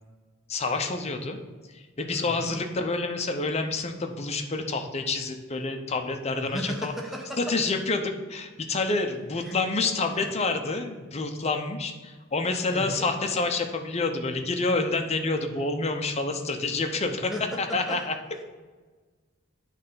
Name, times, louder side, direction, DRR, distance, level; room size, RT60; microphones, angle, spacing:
voice 1, 0.5-1.4 1.7-6.9 7.4-17.3 17.6-18.1, left 3 dB, 30° left, 5 dB, 0.7 m, -28 dB
voice 2, 2.1-2.5 6.4-7.5 9.4-9.5 12.7-13.1 17.3-18.0, equal, ahead, 0 dB, 0.7 m, -35 dB
9.1 x 3.3 x 5.5 m, 1.4 s
head